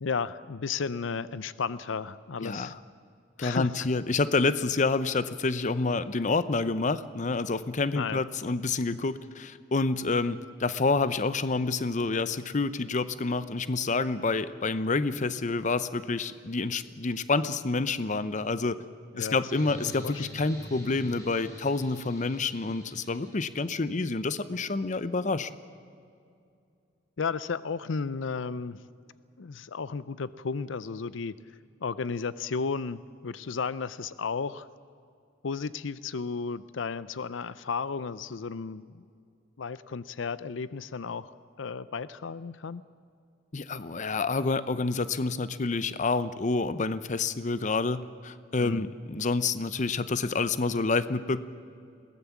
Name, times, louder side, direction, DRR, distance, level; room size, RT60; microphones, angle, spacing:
voice 1, 0.0-2.7 3.4-3.9 8.0-8.2 8.9-9.0 19.1-19.3 19.8-20.2 27.2-28.8 29.4-31.4 31.8-34.7 35.4-39.0 39.6-41.3 41.6-42.8 48.6-48.9, left 5 dB, 90° left, 16 dB, 0.6 m, -33 dB
voice 2, 2.4-2.8 3.4-18.8 19.2-25.5 43.5-51.4, left 3 dB, 40° left, 14 dB, 0.7 m, -28 dB
sound 1, 19.4-23.9, equal, 20° left, 4.9 m, -46 dB
22.0 x 17.5 x 7.3 m, 2.4 s
head